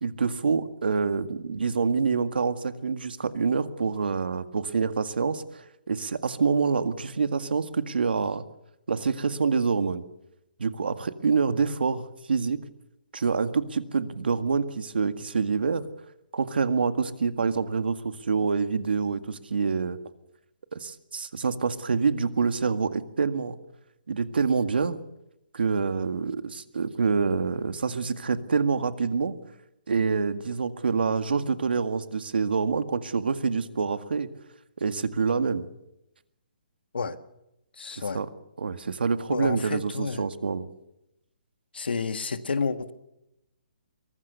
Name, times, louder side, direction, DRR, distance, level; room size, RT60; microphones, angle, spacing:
voice 1, 0.0-5.4 5.9-8.4 8.9-10.0 10.6-12.6 13.1-15.8 16.3-20.0 20.7-23.6 24.1-25.0 25.5-29.4 29.9-34.3 34.8-35.7 37.9-38.3 38.6-40.7, right 5 dB, 80° right, 10 dB, 1.9 m, -26 dB
voice 2, 37.8-38.2 39.3-40.3 41.7-42.9, left 4 dB, 85° left, 10 dB, 1.8 m, -30 dB
23.0 x 19.5 x 6.9 m, 0.86 s
hypercardioid pair, 175°, 5 cm